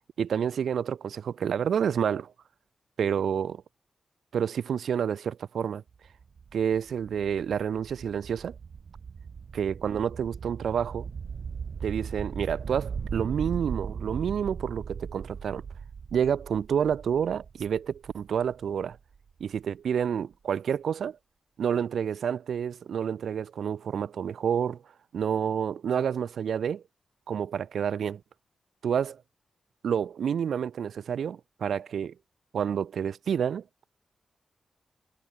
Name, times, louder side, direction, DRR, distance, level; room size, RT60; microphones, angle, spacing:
voice 1, 0.2-2.3 3.0-3.6 4.3-5.8 6.5-8.5 9.5-11.1 11.8-15.6 16.1-19.0 19.4-21.2 21.6-24.8 25.1-26.8 27.3-28.2 28.8-29.2 29.8-32.1 32.5-33.6, right 8 dB, 85° right, 0.9 m, -29 dB
sound 1, 5.9-19.6, right 6 dB, 65° right, 1.3 m, -39 dB
cardioid pair, 75°, 0 cm